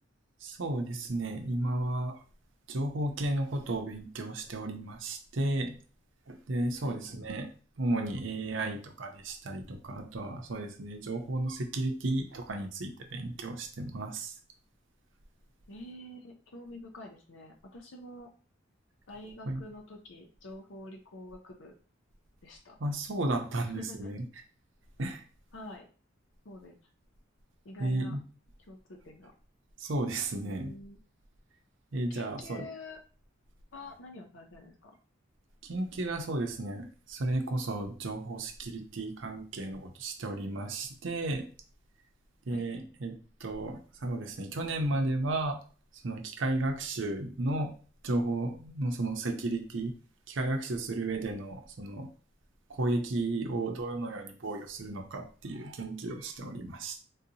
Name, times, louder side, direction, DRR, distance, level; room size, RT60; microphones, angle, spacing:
voice 1, 0.4-2.2 2.7-5.8 6.3-7.5 7.8-14.3 19.5-19.6 22.8-24.2 25.0-25.2 27.8-28.2 29.8-30.7 31.9-32.7 35.6-41.5 42.5-45.6 46.0-47.8 48.0-49.9 50.3-52.1 52.7-57.0, right 2 dB, 70° right, 0.6 m, -33 dB
voice 2, 6.8-7.2 15.7-18.3 19.1-21.7 22.4-22.8 23.5-24.1 25.5-25.9 26.4-26.8 27.6-28.2 28.7-29.3 30.4-31.0 32.1-33.0 33.7-35.0 42.5-42.6, left 1 dB, 70° left, 0.6 m, -47 dB
3.8 x 2.8 x 2.7 m
head